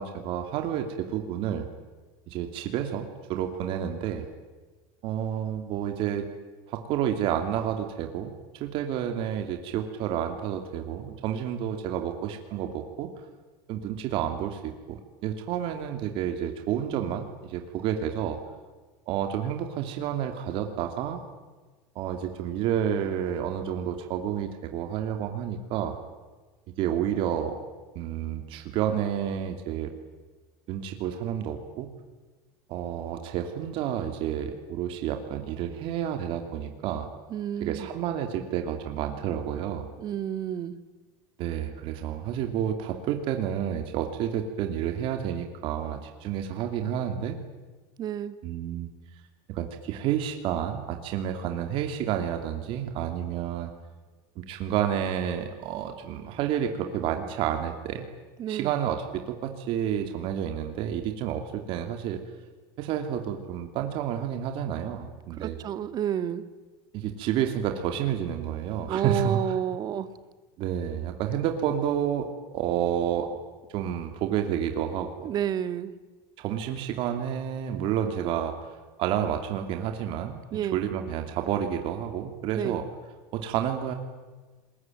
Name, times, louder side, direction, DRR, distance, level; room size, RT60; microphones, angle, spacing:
voice 1, 0.0-1.7 2.3-4.2 5.0-6.3 6.7-13.1 13.7-18.4 19.1-21.2 21.9-25.9 26.8-27.6 27.9-29.9 30.7-31.9 32.7-37.1 37.6-39.9 41.4-47.4 48.4-48.9 49.5-53.7 54.4-58.1 58.5-62.2 62.8-65.6 66.9-69.4 70.6-73.4 73.7-75.3 76.4-78.6 79.0-80.4 80.7-82.8 83.3-83.9, right 9 dB, 55° right, 5 dB, 2.8 m, -30 dB
voice 2, 37.3-37.9 40.0-40.8 48.0-48.4 58.4-58.7 65.4-66.4 68.9-70.1 75.2-75.9 80.5-80.8 82.5-82.8, right 10 dB, 40° right, 12 dB, 1.7 m, -30 dB
27.0 x 21.5 x 9.2 m, 1.3 s
supercardioid pair, 130°, 11 cm